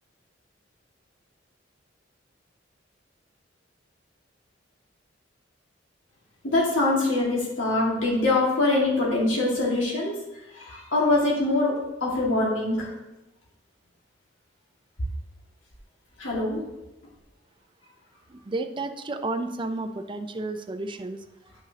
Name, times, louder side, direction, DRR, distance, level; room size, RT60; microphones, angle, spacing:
voice 1, 6.4-10.2 10.5-11.8 12.0-12.9 16.2-16.6, left 2 dB, 90° left, -5 dB, 2.0 m, -23 dB
voice 2, 18.5-21.2, right 2 dB, 25° right, 7 dB, 0.5 m, -31 dB
9.9 x 5.9 x 2.9 m, 0.97 s
head